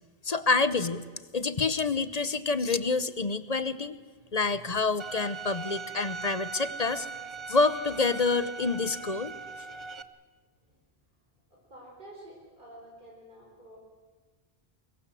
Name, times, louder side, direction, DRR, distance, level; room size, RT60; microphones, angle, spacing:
voice 1, 0.2-1.0 1.3-4.0 4.3-7.1 7.5-9.3, left 3 dB, 40° left, 14 dB, 0.9 m, -27 dB
Bowed string instrument, 5.0-10.0, right 4 dB, 30° right, 0.8 m, -40 dB
voice 2, 11.5-13.8, right 1 dB, 50° right, -3 dB, 4.9 m, -50 dB
25.0 x 21.5 x 7.7 m, 1.4 s
omnidirectional pair, 1.1 m